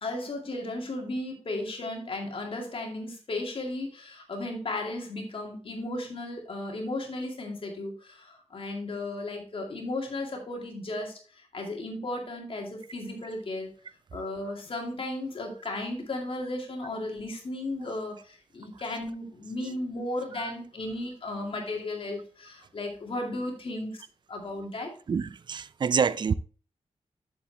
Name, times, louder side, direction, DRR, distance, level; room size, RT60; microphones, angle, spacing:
voice 1, 0.0-13.7 14.1-24.0 24.3-24.9, left 2 dB, 50° left, 2.2 m, -35 dB
voice 2, 25.1-26.3, right 6 dB, 40° right, 0.4 m, -27 dB
7.7 x 7.1 x 3.3 m
wide cardioid pair, 175°, 12 cm